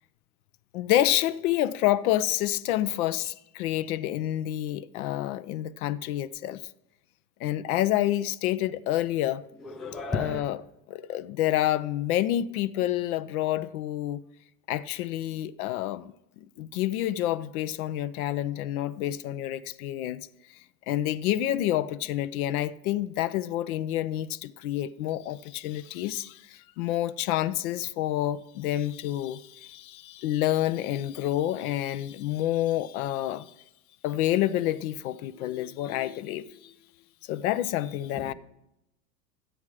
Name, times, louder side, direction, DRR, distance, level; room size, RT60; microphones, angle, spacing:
voice 1, 0.7-6.6 7.4-9.4 10.1-10.6 10.9-14.2 14.7-20.3 20.9-33.5 34.0-36.7 37.2-38.3, left 13 dB, 65° left, 0.7 m, -28 dB
voice 2, 9.6-10.4 38.3-38.4, left 3 dB, ahead, 0.3 m, -33 dB
12.5 x 9.0 x 4.8 m
hypercardioid pair, 115°, 47 cm